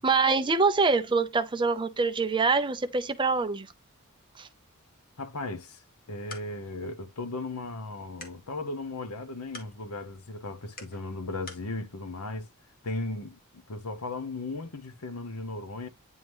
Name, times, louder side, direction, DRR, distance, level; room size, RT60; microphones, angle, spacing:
voice 1, 0.0-3.7 4.4-4.5, right 4 dB, 20° right, 0.7 m, -25 dB
voice 2, 5.2-5.8 6.1-12.5 12.8-15.9, left 2 dB, 85° left, 1.0 m, -36 dB
sound 1, 5.9-11.7, left 3 dB, 45° left, 1.7 m, -51 dB
9.3 x 3.6 x 3.0 m
head